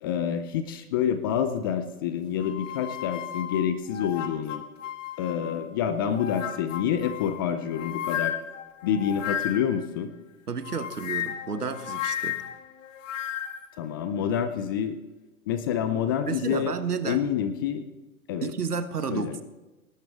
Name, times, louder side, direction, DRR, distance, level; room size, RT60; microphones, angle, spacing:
voice 1, 0.0-4.6 5.2-8.3 8.8-10.1 13.8-15.0 15.5-16.7 17.1-17.9 18.3-18.5 19.1-19.4, left 8 dB, 15° left, 10 dB, 0.4 m, -27 dB
sound 1, 2.4-5.7 6.1-9.9 10.6-13.7, left 10 dB, 55° left, 1.2 m, -34 dB
voice 2, 10.5-12.4 16.3-17.2 18.4-19.4, right 5 dB, 85° right, 11 dB, 1.3 m, -31 dB
18.5 x 12.0 x 3.5 m, 1.1 s
figure-of-eight pair, 115°, 45 cm